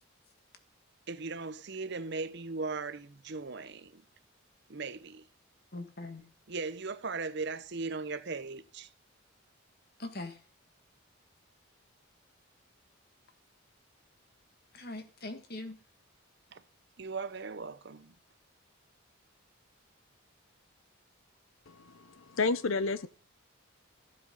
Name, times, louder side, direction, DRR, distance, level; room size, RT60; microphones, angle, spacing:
voice 1, 1.1-4.0 4.7-5.3 6.5-8.9 16.5-16.6 17.0-18.1, right 4 dB, 50° right, 0.8 m, -38 dB
voice 2, 5.7-6.2 10.0-10.4 14.7-15.8, left 2 dB, 45° left, 1.8 m, -41 dB
voice 3, 21.7-23.1, left 4 dB, 70° left, 0.7 m, -31 dB
15.0 x 7.5 x 5.4 m
head